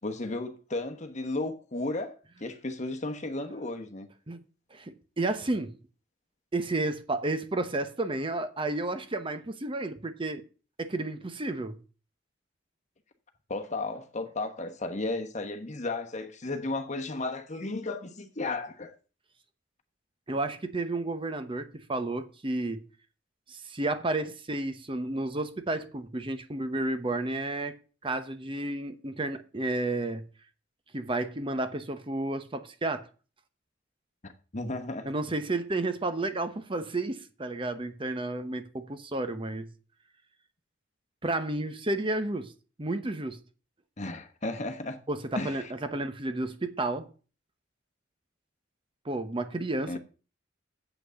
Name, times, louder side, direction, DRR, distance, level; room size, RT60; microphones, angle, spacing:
voice 1, 0.0-4.1 13.5-18.9 34.2-35.1 44.0-45.0 45.3-45.7 49.9-50.0, left 2 dB, 35° left, 1.1 m, -34 dB
voice 2, 4.7-5.7 6.5-10.4 10.8-11.8 20.3-22.9 23.5-27.7 28.0-30.2 30.9-33.1 35.0-39.7 41.2-42.5 42.8-43.4 45.1-47.1 49.0-50.0, right 2 dB, 25° right, 0.8 m, -31 dB
8.1 x 6.0 x 6.9 m
head